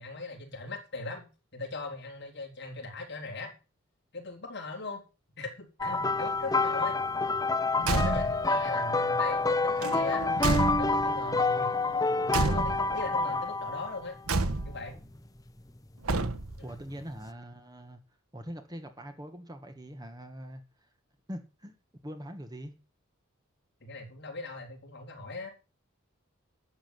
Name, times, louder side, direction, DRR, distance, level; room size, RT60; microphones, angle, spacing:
voice 1, 0.0-3.5 4.1-5.0 5.4-7.0 7.9-10.3 10.8-11.7 12.2-14.2 14.6-15.0 16.6-16.8 23.8-25.5, left 3 dB, 50° left, 4.1 m, -39 dB
sound 1, 5.8-14.1 14.9-15.2 17.0-17.1, left 3 dB, 15° left, 0.7 m, -28 dB
Car / Truck / Slam, 7.8-8.5 9.8-11.2 12.3-13.1 14.3-14.9 16.0-16.7, right 3 dB, 85° right, 1.1 m, -30 dB
voice 2, 8.7-9.0 16.6-18.0 18.3-20.6 21.3-21.8 22.0-22.7, equal, 20° right, 1.5 m, -42 dB
12.0 x 7.8 x 7.8 m
head